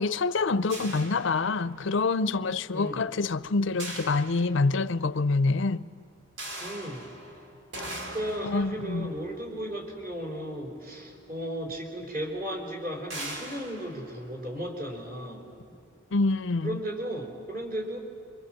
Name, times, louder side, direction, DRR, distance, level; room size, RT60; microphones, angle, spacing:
voice 1, 0.0-5.9 8.4-9.1 16.1-16.8, left 3 dB, 60° left, 0.5 m, -26 dB
sound 1, 0.7-2.1 3.8-5.1 6.4-10.8 11.8-11.9 12.2-12.4 13.1-15.1, right 1 dB, 60° right, 2.7 m, -42 dB
voice 2, 2.7-3.0 6.6-7.1 8.0-15.8 16.6-18.0, right 1 dB, 40° right, 4.2 m, -35 dB
26.0 x 23.5 x 7.6 m
head